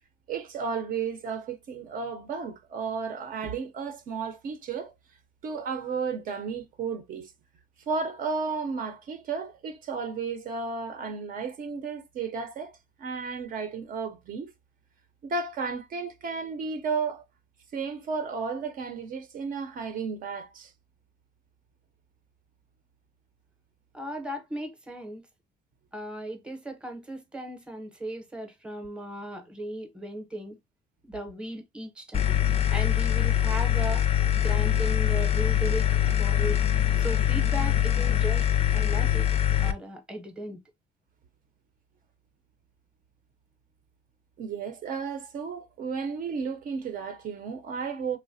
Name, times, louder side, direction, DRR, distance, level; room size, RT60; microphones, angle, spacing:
voice 1, 0.3-4.9 5.4-7.3 7.9-14.5 15.2-17.2 17.7-20.7 44.4-48.2, right 5 dB, 55° right, 0.6 m, -33 dB
voice 2, 23.9-25.3 25.9-30.6 31.0-32.3 32.7-34.1 34.4-35.9 36.2-36.6 37.0-38.5 38.7-39.3 39.6-40.6, right 1 dB, 5° right, 0.7 m, -36 dB
sound 1, 32.1-39.7, left 11 dB, 35° left, 0.4 m, -23 dB
3.1 x 2.1 x 2.6 m
cardioid pair, 110°, 17 cm